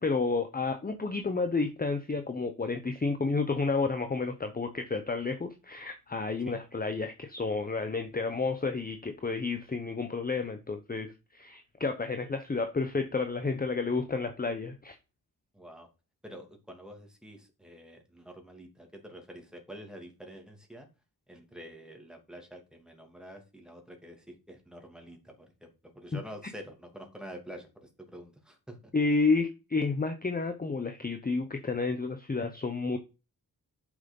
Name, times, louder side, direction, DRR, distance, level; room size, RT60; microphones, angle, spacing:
voice 1, 0.0-15.0 28.9-33.0, left 4 dB, 25° left, 0.9 m, -31 dB
voice 2, 15.5-15.9 16.2-20.9 21.3-28.9, equal, ahead, 2.8 m, -47 dB
7.6 x 6.2 x 5.4 m
wide cardioid pair, 100°, 37 cm